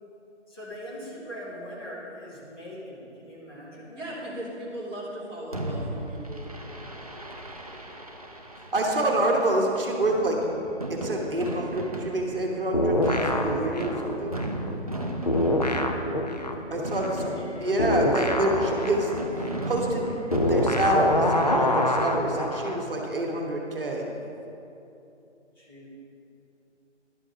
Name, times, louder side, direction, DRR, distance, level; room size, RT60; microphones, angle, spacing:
voice 1, 0.5-4.2 8.8-9.1 17.0-17.5 21.5-21.9 25.5-25.9, equal, 20° left, -7 dB, 1.4 m, -41 dB
voice 2, 3.9-6.5, right 1 dB, ahead, -17 dB, 1.1 m, -37 dB
Fireworks, 5.5-21.7, right 1 dB, 35° right, 0.5 m, -36 dB
voice 3, 8.7-10.4 10.9-14.3 16.7-17.3 17.6-19.1 19.6-20.1 20.4-24.0, right 1 dB, 50° right, 0 dB, 1.2 m, -27 dB
sound 1, 12.7-15.0 15.3-22.8, left 1 dB, 35° left, 0.4 m, -26 dB
11.0 x 5.1 x 5.0 m, 2.8 s
figure-of-eight pair, 150°, 35 cm